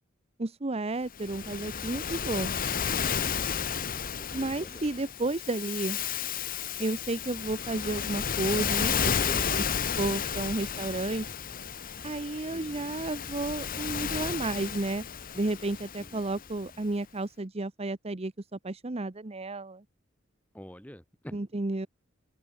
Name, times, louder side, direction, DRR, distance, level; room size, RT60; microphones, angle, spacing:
voice 1, 0.4-2.5 4.3-6.0 6.8-9.6 10.0-11.3 12.0-15.0 15.3-19.8 21.3-21.9, right 2 dB, 30° right, 0.9 m, -32 dB
Waves surf, 1.1-16.6, left 7 dB, 45° left, 1.1 m, -32 dB
voice 2, 3.6-4.8 12.4-13.0 16.0-16.9 20.5-21.4, equal, 5° left, 6.1 m, -48 dB
head